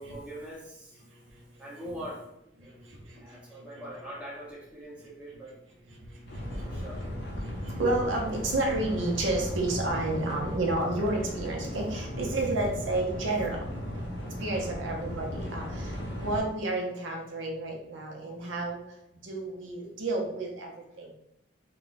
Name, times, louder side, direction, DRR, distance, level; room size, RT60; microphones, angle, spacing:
voice 1, 0.0-1.0 1.6-2.3 2.6-2.7 3.2-5.6 6.6-7.1 14.9-15.0, right 1 dB, 5° right, -6 dB, 0.6 m, -42 dB
voice 2, 1.0-1.6 2.6-3.8 5.9-13.6 14.2-21.1, right 2 dB, 85° right, 1 dB, 0.6 m, -32 dB
sound 1, 6.3-16.4, equal, 60° left, 0.6 m, -36 dB
2.2 x 2.1 x 3.9 m, 0.81 s
head